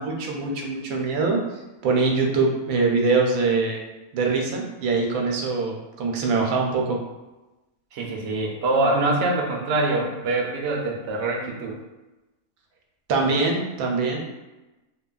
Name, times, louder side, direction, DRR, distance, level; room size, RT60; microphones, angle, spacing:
voice 1, 0.0-1.4 1.8-3.8 4.1-7.0 13.1-14.2, right 4 dB, 85° right, 0 dB, 1.0 m, -23 dB
voice 2, 7.9-11.8, right 2 dB, 65° right, 0 dB, 0.7 m, -24 dB
3.1 x 2.2 x 2.3 m, 1.1 s
omnidirectional pair, 1.5 m